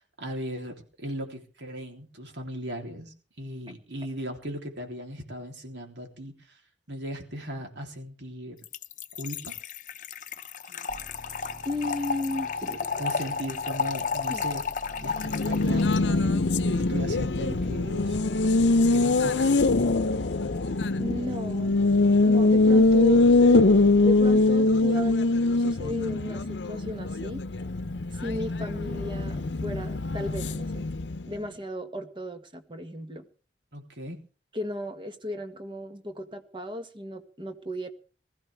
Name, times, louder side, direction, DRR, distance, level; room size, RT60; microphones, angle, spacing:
voice 1, 0.0-6.6 6.9-8.6 9.2-9.6 10.7-10.9 13.0-14.6 15.0-18.2 18.9-19.7 33.7-34.2, equal, 90° right, 3.5 m, -37 dB
Trickle dribble / Fill (with liquid), 8.6-16.0, left 5 dB, 45° left, 0.7 m, -32 dB
sound 1, 10.9-24.4, equal, 5° left, 7.9 m, -47 dB
voice 2, 11.7-12.9 14.3-14.4 21.0-21.8 22.2-25.2 25.6-27.4 28.1-30.9 31.3-33.3 34.5-37.9, left 1 dB, 30° right, 1.6 m, -35 dB
Race car auto racing, 15.1-31.4, left 2 dB, 85° left, 0.7 m, -23 dB
20.5 x 14.5 x 3.5 m
head